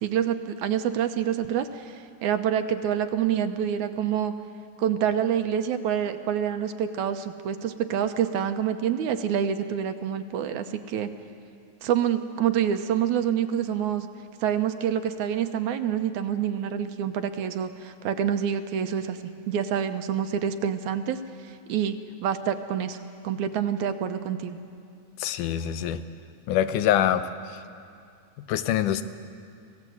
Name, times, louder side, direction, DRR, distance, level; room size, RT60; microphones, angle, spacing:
voice 1, 0.0-4.3 4.8-11.1 11.8-14.1 14.4-19.2 19.5-21.2 21.7-22.0 22.2-23.0 23.2-24.6, right 9 dB, 80° right, 8 dB, 2.3 m, -27 dB
voice 2, 25.2-26.0 26.5-27.2 27.5-27.6 28.5-29.0, left 11 dB, 90° left, 11 dB, 2.4 m, -24 dB
25.0 x 17.5 x 7.9 m, 2.4 s
omnidirectional pair, 3.5 m